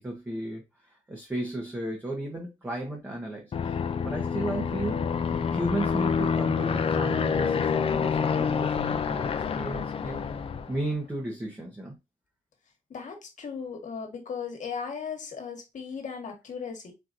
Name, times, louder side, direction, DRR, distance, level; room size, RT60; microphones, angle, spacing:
voice 1, 0.0-3.7 4.0-10.2 10.7-12.0, right 1 dB, 15° right, 1.0 m, -34 dB
Aircraft, 3.5-10.8, left 6 dB, 45° left, 0.4 m, -27 dB
voice 2, 12.9-16.9, left 6 dB, 65° left, 1.4 m, -37 dB
4.4 x 3.9 x 2.6 m
wide cardioid pair, 165°, 14 cm